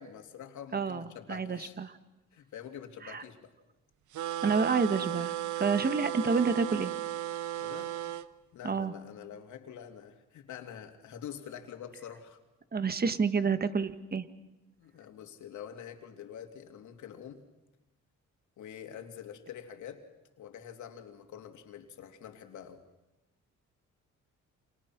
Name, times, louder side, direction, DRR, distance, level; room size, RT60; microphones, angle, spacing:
voice 1, 0.0-1.8 2.3-3.5 7.6-7.9 8.5-12.4 14.8-17.5 18.6-20.0 20.4-22.8, left 9 dB, 75° left, 5 dB, 3.0 m, -46 dB
voice 2, 0.7-1.9 3.0-3.2 4.4-6.9 8.6-8.9 12.7-14.3, right 5 dB, 30° right, 11 dB, 1.6 m, -29 dB
sound 1, 4.1-8.3, right 12 dB, 75° right, 1.0 m, -35 dB
29.0 x 27.0 x 6.1 m, 1.0 s
cardioid pair, 90°, 30 cm